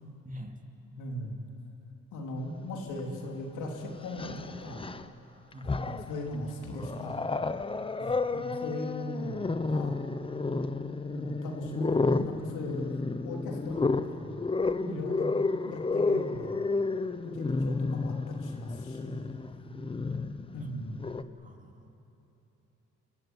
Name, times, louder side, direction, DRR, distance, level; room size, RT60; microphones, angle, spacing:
voice 1, 1.0-1.4 2.1-4.9 5.6-7.2 8.3-10.0 10.9-13.0 13.2-14.4 14.8-15.3 15.6-16.6 17.2-19.3 20.5-21.0, left 1 dB, 85° left, 0 dB, 3.5 m, -39 dB
Growling, 3.0-3.1 4.0-5.1 5.5-6.2 6.6-21.2, left 3 dB, 20° left, 0.8 m, -31 dB
voice 2, 21.4-21.9, equal, 25° right, 3 dB, 2.6 m, -43 dB
27.5 x 14.5 x 9.8 m, 2.9 s
cardioid pair, 90°, 30 cm